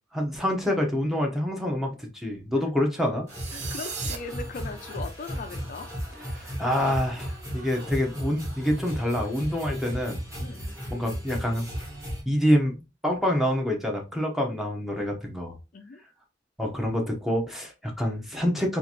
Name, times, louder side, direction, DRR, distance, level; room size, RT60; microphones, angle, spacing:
voice 1, 0.1-3.3 6.3-10.2 10.9-11.7 12.3-15.6 16.6-18.8, equal, ahead, 0.7 m, -26 dB
sound 1, 3.3-12.2, equal, 20° right, 1.5 m, -35 dB
sound 2, 3.3-4.2, right 6 dB, 40° right, 0.6 m, -35 dB
voice 2, 3.5-5.9 10.4-10.7 15.7-16.0, left 4 dB, 45° left, 0.4 m, -39 dB
3.8 x 2.5 x 2.8 m
head